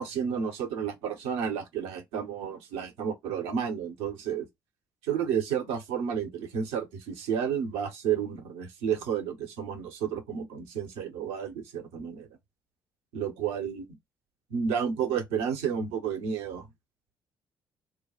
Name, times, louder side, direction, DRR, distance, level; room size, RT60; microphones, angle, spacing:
voice 1, 0.0-4.5 5.0-12.3 13.1-14.0 14.5-16.7, right 7 dB, 65° right, 1.1 m, -31 dB
3.3 x 2.3 x 3.1 m
figure-of-eight pair, 45°, 11 cm